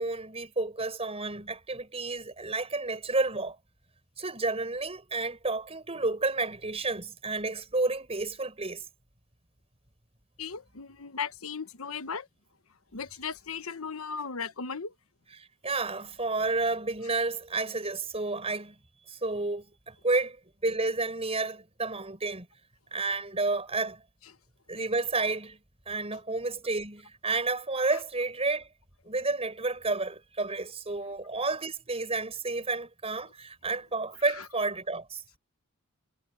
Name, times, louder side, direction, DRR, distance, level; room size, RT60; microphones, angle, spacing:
voice 1, 0.0-3.6 4.2-8.8 15.3-18.8 19.1-20.4 20.6-22.5 22.9-24.0 24.7-25.6 25.9-28.7 29.0-35.2, right 3 dB, 30° right, 5.9 m, -31 dB
voice 2, 10.4-12.3 12.9-14.9, left 5 dB, 80° left, 1.2 m, -36 dB
head